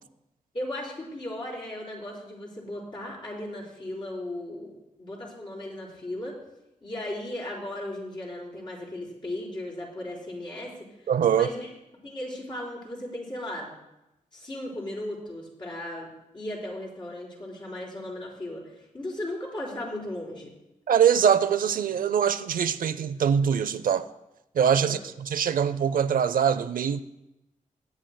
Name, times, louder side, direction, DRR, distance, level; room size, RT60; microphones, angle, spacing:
voice 1, 0.5-4.7 5.0-6.3 6.8-10.9 11.3-11.7 12.0-13.7 14.3-16.1 16.3-20.5 24.8-25.0, left 1 dB, 35° left, -6 dB, 4.2 m, -36 dB
voice 2, 11.1-11.5 20.9-24.1 24.5-27.0, right 8 dB, 90° right, 13 dB, 0.6 m, -23 dB
21.5 x 9.2 x 2.2 m, 0.91 s
wide cardioid pair, 135°, 14 cm